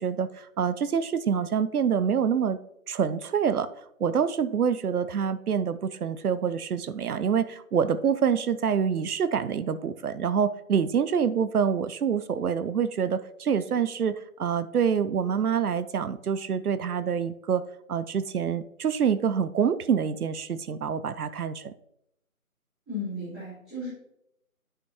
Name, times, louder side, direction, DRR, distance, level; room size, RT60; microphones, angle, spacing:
voice 1, 0.0-2.6 2.9-3.7 4.0-17.6 17.9-21.7, right 7 dB, 90° right, 14 dB, 0.6 m, -26 dB
voice 2, 22.9-23.9, left 2 dB, ahead, -19 dB, 2.4 m, -34 dB
9.7 x 5.7 x 2.9 m, 0.78 s
figure-of-eight pair, 170°, 43 cm